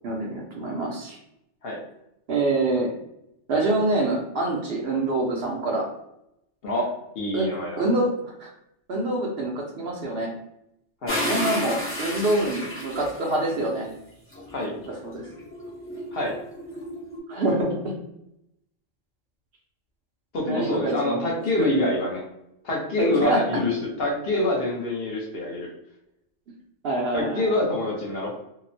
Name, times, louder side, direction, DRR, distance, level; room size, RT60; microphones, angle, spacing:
voice 1, 0.0-1.2 2.3-2.9 3.5-5.9 7.3-7.5 7.8-8.5 8.9-10.3 11.2-13.9 14.8-15.3 17.3-17.9 20.5-21.3 21.6-21.7 23.0-23.4 26.8-27.6, right 2 dB, 65° right, -1 dB, 0.7 m, -26 dB
voice 2, 7.1-7.8 11.0-11.2 14.5-14.7 16.1-16.3 20.3-22.2 22.6-25.7 27.1-28.3, left 1 dB, 60° left, -2 dB, 0.8 m, -26 dB
sound 1, 11.1-13.7 14.3-17.2, left 1 dB, 15° left, 0.4 m, -32 dB
2.8 x 2.0 x 2.5 m, 0.81 s
omnidirectional pair, 1.3 m